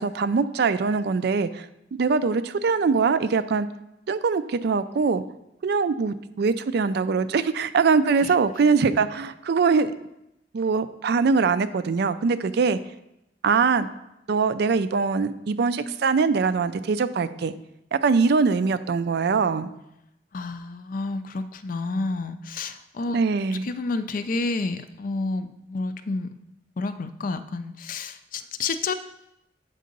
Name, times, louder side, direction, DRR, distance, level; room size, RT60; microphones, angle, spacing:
voice 1, 0.0-1.7 2.0-3.7 4.1-5.2 5.6-9.9 10.5-12.8 13.4-13.9 14.3-17.5 17.9-19.7 23.1-23.7, right 5 dB, 60° right, 13 dB, 0.4 m, -22 dB
voice 2, 20.3-23.2 23.5-26.3 26.8-28.9, left 3 dB, 50° left, 11 dB, 0.4 m, -30 dB
7.8 x 3.7 x 5.2 m, 0.86 s
head